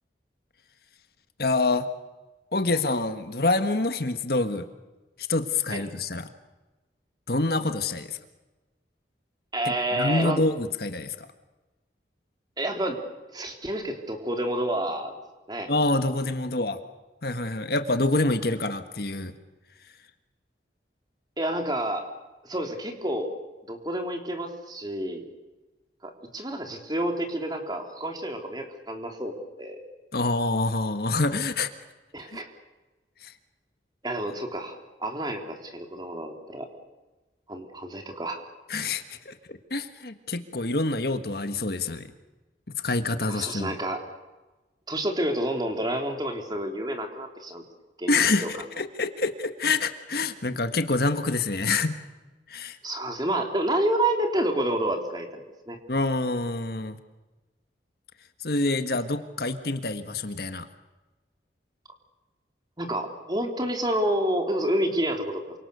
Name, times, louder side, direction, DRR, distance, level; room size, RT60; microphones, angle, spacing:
voice 1, 1.4-1.9 2.5-4.7 5.3-6.3 7.3-8.2 9.9-11.3 15.7-16.8 17.2-19.4 30.1-31.7 32.3-32.4 33.2-33.3 38.7-42.1 42.8-43.7 48.1-52.0 52.5-52.8 55.9-57.0 58.4-60.7, left 2 dB, 55° left, 9 dB, 1.6 m, -26 dB
voice 2, 9.5-10.4 12.6-13.0 13.3-15.1 15.5-15.7 21.4-22.0 22.4-23.3 23.7-25.2 26.0-29.8 32.1-32.5 34.0-36.7 37.5-38.4 43.3-44.0 44.9-47.6 48.0-48.5 52.8-55.8 62.8-65.4, right 1 dB, 25° right, 4 dB, 3.2 m, -29 dB
28.0 x 25.5 x 6.9 m, 1.2 s
head